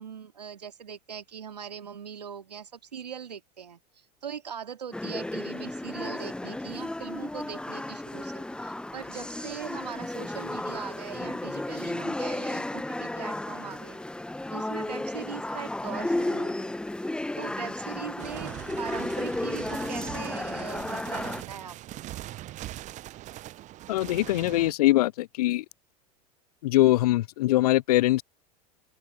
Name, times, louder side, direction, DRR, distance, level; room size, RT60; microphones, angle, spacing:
voice 1, 0.0-14.1 14.5-16.8 17.4-22.1, right 8 dB, 85° right, 2.3 m, -41 dB
sound 1, 4.9-21.4, left 1 dB, 5° left, 1.2 m, -33 dB
sound 2, 18.2-24.7, right 15 dB, 35° right, 0.8 m, -41 dB
voice 2, 23.9-25.6 26.6-28.2, left 16 dB, 70° left, 0.5 m, -22 dB
open air
hypercardioid pair, 85°, 20 cm